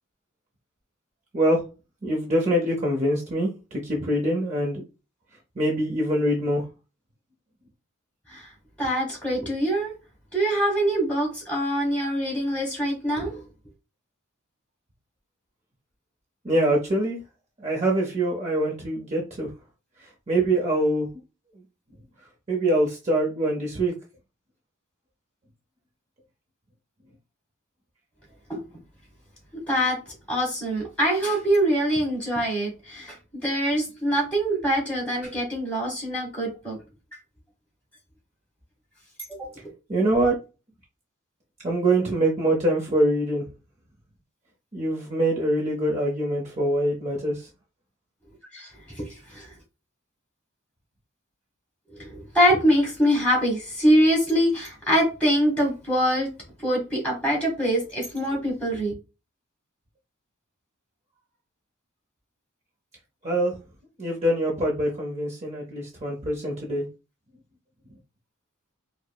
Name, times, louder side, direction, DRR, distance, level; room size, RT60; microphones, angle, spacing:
voice 1, 2.0-4.8 5.6-6.6 16.4-17.2 17.6-19.5 20.0-21.1 22.5-23.9 39.9-40.4 41.6-43.5 44.7-47.5 63.2-63.6 64.0-66.8, right 1 dB, 30° right, 0.6 m, -24 dB
voice 2, 8.8-9.9 10.3-13.4 28.5-28.6 29.5-30.0 30.3-36.8 39.3-39.5 48.5-49.5 51.9-56.3 56.6-58.9, equal, 5° left, 1.9 m, -24 dB
4.6 x 2.0 x 2.3 m
head